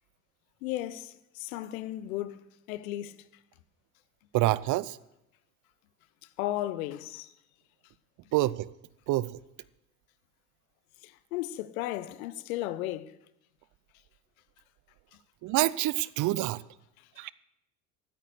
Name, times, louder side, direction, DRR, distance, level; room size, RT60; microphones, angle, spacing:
voice 1, 0.6-3.1 6.4-7.3 11.0-13.2 17.0-17.1, left 14 dB, 70° left, 1.0 m, -35 dB
voice 2, 4.3-5.0 8.3-8.7 9.1-9.4 15.4-16.6 17.2-17.3, right 17 dB, 45° right, 0.7 m, -27 dB
13.5 x 9.4 x 8.1 m
hypercardioid pair, 75°, 44 cm